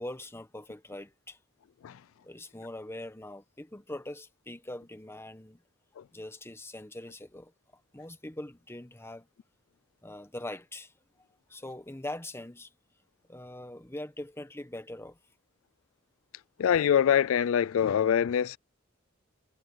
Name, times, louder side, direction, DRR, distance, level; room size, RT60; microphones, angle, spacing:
voice 1, 0.0-1.4 2.2-5.6 6.1-9.3 10.0-10.9 11.5-12.7 13.3-15.2, left 1 dB, 10° left, 1.3 m, -42 dB
voice 2, 16.6-18.6, left 9 dB, 90° left, 0.4 m, -24 dB
head